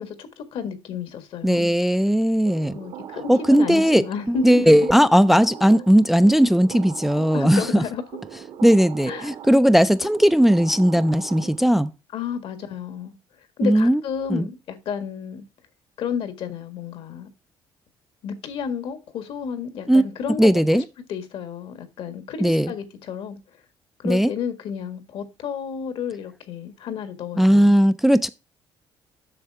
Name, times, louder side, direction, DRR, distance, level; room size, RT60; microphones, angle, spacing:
voice 1, 0.0-1.7 2.7-4.9 7.3-8.0 9.1-9.3 12.1-13.1 13.6-15.5 16.0-17.3 18.2-20.8 21.1-23.4 24.0-27.7, left 6 dB, 65° left, 1.7 m, -31 dB
voice 2, 1.4-2.8 3.3-7.8 8.6-11.9 13.6-14.0 14.3-14.5 19.9-20.0 20.4-20.8 22.4-22.7 24.0-24.3 27.4-28.3, equal, ahead, 0.3 m, -17 dB
sound 1, 2.5-11.9, right 9 dB, 70° right, 1.2 m, -40 dB
7.8 x 6.5 x 4.7 m
cardioid pair, 140°, 10 cm